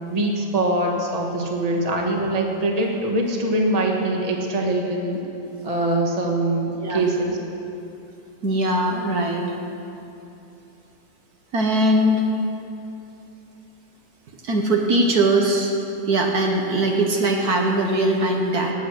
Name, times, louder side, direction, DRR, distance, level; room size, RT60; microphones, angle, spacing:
voice 1, 0.1-5.2 5.6-7.4, right 1 dB, 25° right, 1 dB, 1.4 m, -23 dB
voice 2, 8.4-9.4 11.5-12.2 14.4-15.7 16.1-18.7, right 1 dB, 60° right, 1 dB, 1.6 m, -20 dB
19.0 x 8.1 x 6.3 m, 2.8 s
omnidirectional pair, 1.9 m